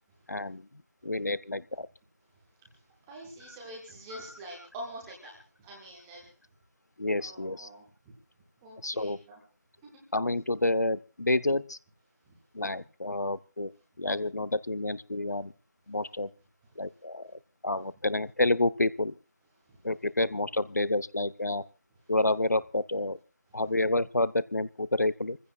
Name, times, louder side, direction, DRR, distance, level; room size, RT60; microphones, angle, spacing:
voice 1, 0.3-0.6 1.0-1.9 7.0-7.7 8.8-9.2 10.1-11.8 12.5-13.7 14.0-15.5 15.9-16.3 16.8-17.3 17.6-19.1 19.8-21.6 22.1-23.2 23.5-25.4, left 2 dB, 70° left, 17 dB, 0.8 m, -29 dB
voice 2, 2.6-6.3 7.2-8.2 8.6-9.4 12.3-12.4 19.7-19.8 23.5-23.6, right 1 dB, 5° right, -1 dB, 0.7 m, -46 dB
27.0 x 15.5 x 2.4 m, 0.31 s
figure-of-eight pair, 170°, 10 cm